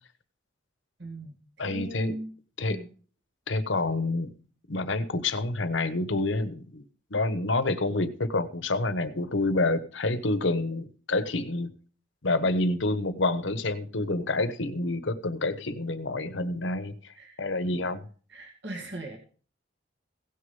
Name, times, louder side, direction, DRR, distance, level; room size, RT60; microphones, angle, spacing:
voice 1, 1.0-2.3 2.7-2.9 17.1-17.4 18.3-19.2, right 1 dB, 60° right, 2 dB, 2.3 m, -39 dB
voice 2, 1.6-2.1 2.6-2.8 3.5-4.3 4.7-6.8 7.1-11.7 12.2-18.1, left 2 dB, 70° left, 12 dB, 1.1 m, -28 dB
17.0 x 6.8 x 5.5 m, 0.42 s
head